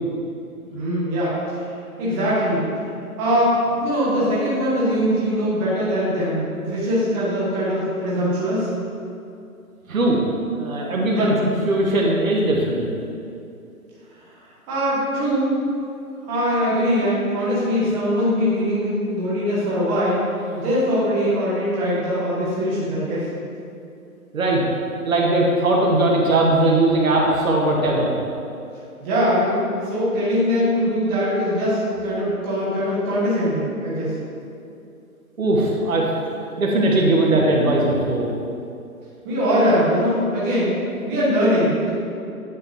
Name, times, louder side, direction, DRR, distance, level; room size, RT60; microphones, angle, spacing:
voice 1, 0.7-2.9 3.2-8.7 11.1-11.3 14.7-15.5 16.2-20.3 20.5-23.3 29.0-34.2 39.2-42.0, equal, 15° right, -9 dB, 1.0 m, -22 dB
voice 2, 9.9-10.2 10.6-11.3 11.7-12.9 24.3-24.6 25.0-28.1 35.4-36.1 36.6-38.3, right 2 dB, 65° right, -2 dB, 1.4 m, -19 dB
8.8 x 5.1 x 2.8 m, 2.6 s
figure-of-eight pair, 145°, 44 cm